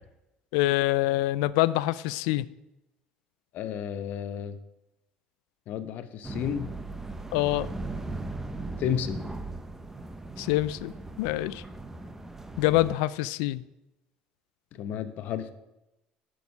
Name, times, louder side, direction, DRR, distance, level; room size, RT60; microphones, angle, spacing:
voice 1, 0.5-2.5 7.3-7.7 10.4-10.9 11.2-11.6 12.6-13.6, left 17 dB, 85° left, 18 dB, 0.4 m, -25 dB
voice 2, 3.5-4.6 5.7-6.7 8.8-9.2 14.7-15.5, left 9 dB, 65° left, 11 dB, 0.9 m, -32 dB
sound 1, 6.2-12.9, right 2 dB, 10° right, 0.8 m, -38 dB
10.5 x 6.3 x 5.2 m, 0.95 s
supercardioid pair, 95°, 3 cm